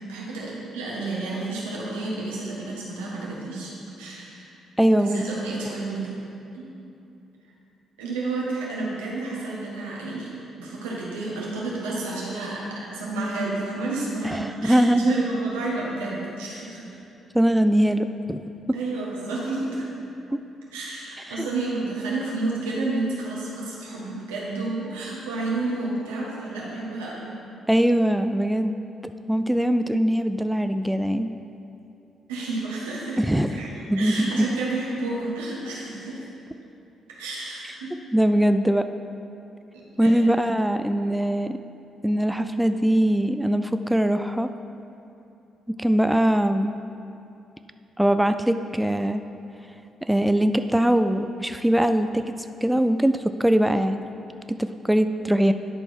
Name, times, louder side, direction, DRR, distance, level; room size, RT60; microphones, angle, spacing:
voice 1, 0.0-3.7 4.0-4.5 4.9-6.1 6.5-6.7 8.0-16.9 18.7-20.0 20.7-27.3 32.3-33.2 33.5-33.7 34.0-36.3 37.2-37.9 39.7-40.4, right 2 dB, 90° right, -5 dB, 1.4 m, -30 dB
voice 2, 4.8-5.2 14.2-15.1 17.3-18.4 21.3-21.5 27.7-28.7 29.3-31.3 33.2-33.5 33.9-34.3 38.1-38.9 40.0-41.6 42.0-44.5 45.8-46.7 48.0-49.2 50.0-52.2 52.6-54.0 54.8-55.5, right 1 dB, 5° right, 9 dB, 0.3 m, -21 dB
10.5 x 4.5 x 4.4 m, 2.8 s
hypercardioid pair, 50°, 0 cm